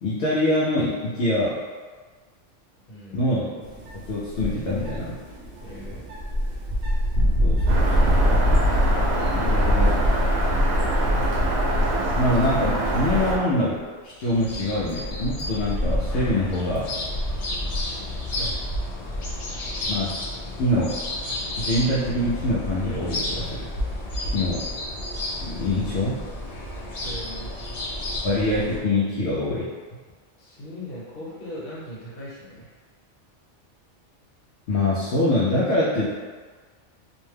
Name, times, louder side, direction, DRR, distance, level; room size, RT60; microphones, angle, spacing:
voice 1, 0.0-1.6 3.1-3.5 3.9-5.2 7.4-8.3 9.4-10.0 12.2-16.9 18.4-18.5 19.9-20.1 20.6-20.9 21.6-23.7 24.3-24.7 25.4-26.2 28.2-29.7 34.7-36.1, left 1 dB, 70° left, -7 dB, 0.8 m, -24 dB
voice 2, 2.9-3.2 5.6-6.0 27.0-27.5 30.4-32.8, left 1 dB, 50° left, -8 dB, 1.1 m, -39 dB
sound 1, 3.6-12.1 12.4-12.9 13.4-13.5 14.4-19.3, equal, 55° right, 0.8 m, -26 dB
Bird vocalization bird call bird song, 7.7-13.4, right 1 dB, 90° right, 0.9 m, -22 dB
sound 2, 14.2-28.8, left 1 dB, 85° left, 0.3 m, -32 dB
2.6 x 2.1 x 3.2 m, 1.5 s
omnidirectional pair, 1.2 m